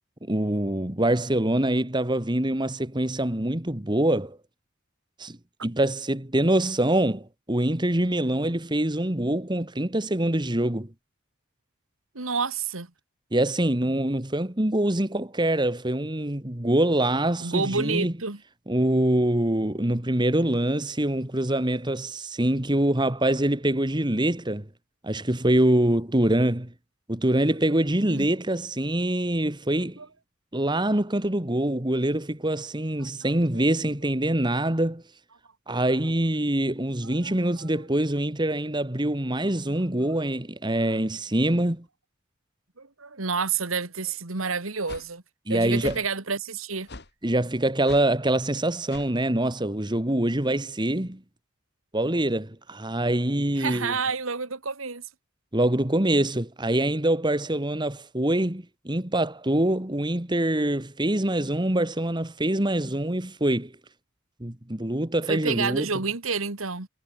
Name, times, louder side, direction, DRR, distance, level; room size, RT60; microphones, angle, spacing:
voice 1, 0.3-4.4 5.2-10.9 13.3-18.1 18.7-24.7 25.0-26.7 27.1-30.0 30.5-35.0 35.7-41.8 45.5-46.0 47.2-51.2 51.9-53.9 55.5-63.7 64.4-65.9, right 1 dB, 20° right, 1.8 m, -24 dB
voice 2, 12.1-12.9 17.4-18.4 28.1-28.3 30.0-30.1 33.0-33.1 33.5-33.7 35.7-35.8 37.0-37.7 40.0-40.1 42.8-45.2 45.5-46.9 53.5-55.0 65.3-66.9, right 4 dB, 80° right, 2.2 m, -29 dB
sound 1, 44.9-45.1 45.8-46.1 46.9-47.1 47.8-48.1 48.9-49.1, left 2 dB, 55° left, 3.0 m, -41 dB
head